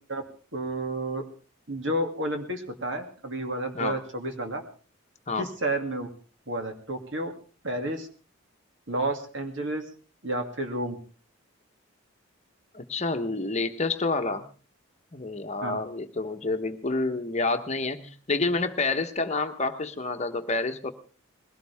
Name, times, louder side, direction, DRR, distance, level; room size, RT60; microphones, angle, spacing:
voice 1, 0.5-1.2 1.7-4.6 5.4-6.1 6.5-7.3 7.6-8.1 8.9-9.8 10.2-11.0 15.6-15.8, right 1 dB, 60° right, 5 dB, 2.6 m, -31 dB
voice 2, 12.7-14.4 15.1-20.9, left 3 dB, 30° left, 7 dB, 1.1 m, -28 dB
21.0 x 17.0 x 3.5 m, 0.37 s
head